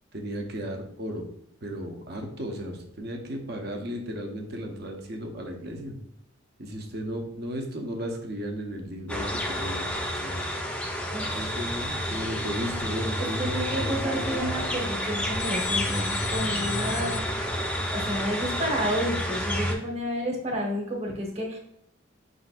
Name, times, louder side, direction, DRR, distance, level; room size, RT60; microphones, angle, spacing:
voice 1, 0.1-1.2 1.6-6.0 6.6-10.4 11.3-14.5, equal, 50° right, 3 dB, 0.8 m, -35 dB
sound 1, 9.1-19.7, equal, 5° left, 0.6 m, -30 dB
voice 2, 11.1-11.6 13.4-17.6 17.9-21.6, equal, 30° right, 1 dB, 1.0 m, -31 dB
sound 2, 11.6-19.0, equal, 70° right, 1.4 m, -43 dB
sound 3, 12.1-14.4 15.4-17.2, left 10 dB, 75° left, 0.5 m, -40 dB
5.4 x 3.9 x 2.4 m, 0.78 s
head